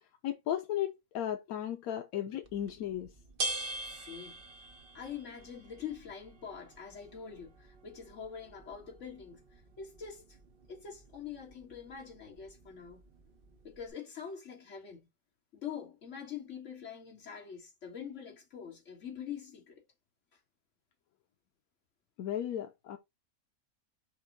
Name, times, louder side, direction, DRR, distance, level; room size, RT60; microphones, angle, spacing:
voice 1, 0.2-3.1 22.2-23.0, left 11 dB, 85° left, 1.1 m, -35 dB
sound 1, 2.4-13.9, right 2 dB, 50° right, 0.8 m, -45 dB
voice 2, 3.9-4.4 4.9-10.3 10.7-13.0 13.6-15.0 15.5-19.8, left 7 dB, 60° left, 1.9 m, -44 dB
5.9 x 2.1 x 4.0 m
omnidirectional pair, 1.5 m